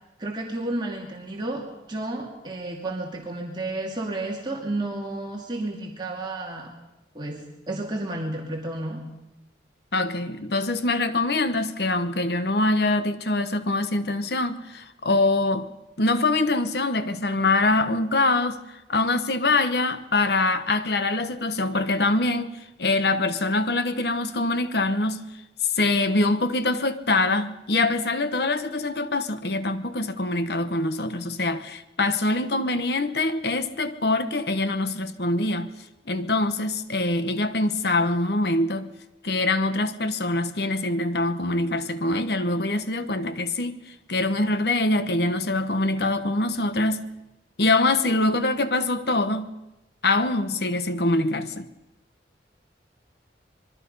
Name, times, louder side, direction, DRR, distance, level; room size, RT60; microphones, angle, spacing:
voice 1, 0.2-6.7 7.1-9.0, right 2 dB, 25° right, 2.4 m, -31 dB
voice 2, 9.9-15.7 16.0-25.3 25.7-35.7 36.1-38.9 39.2-47.1 47.6-49.6 50.0-51.7, left 2 dB, 60° left, 1.1 m, -24 dB
26.0 x 22.0 x 5.5 m
head